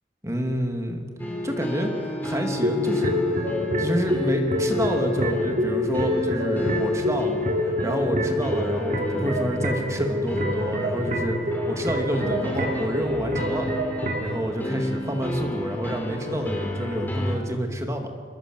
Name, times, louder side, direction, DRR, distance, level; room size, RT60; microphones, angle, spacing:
voice 1, 0.2-1.1 1.4-3.5 3.8-7.3 7.6-11.4 11.7-13.7 14.2-18.1, equal, 15° right, 3 dB, 2.7 m, -28 dB
sound 1, 1.2-17.4, left 1 dB, 10° left, 4.2 m, -32 dB
sound 2, 2.6-14.4, left 1 dB, 45° right, 3.4 m, -27 dB
28.5 x 21.5 x 8.1 m, 2.1 s
head